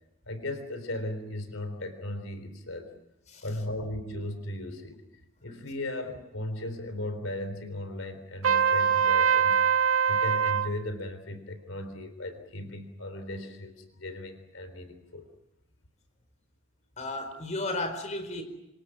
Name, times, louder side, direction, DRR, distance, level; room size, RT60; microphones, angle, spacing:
voice 1, 0.3-2.9 3.4-5.0 5.4-9.6 10.1-15.3, left 1 dB, 80° left, 9 dB, 3.9 m, -37 dB
Trumpet, 8.4-10.7, right 7 dB, 90° right, 0.9 m, -23 dB
voice 2, 17.0-18.4, left 2 dB, 35° left, 7 dB, 4.6 m, -33 dB
27.5 x 26.5 x 6.2 m, 0.89 s
head